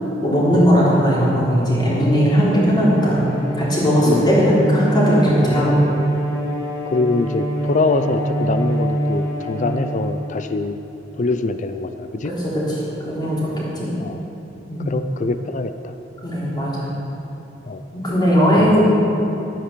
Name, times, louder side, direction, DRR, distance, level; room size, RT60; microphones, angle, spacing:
voice 1, 0.2-3.3 3.5-5.8 12.2-12.3 12.7-12.8 13.0-13.9 14.7-14.9 16.2-16.9 17.9-18.9, equal, 25° left, -7 dB, 3.4 m, -17 dB
Bowed string instrument, 2.2-10.6, right 1 dB, 20° right, 3.2 m, -25 dB
voice 2, 4.1-4.5 6.8-10.8 11.2-12.3 14.0-14.2 14.9-15.9 17.7-17.8 18.6-18.9, left 3 dB, 40° left, 9 dB, 0.5 m, -24 dB
12.0 x 9.2 x 6.8 m, 3.0 s
head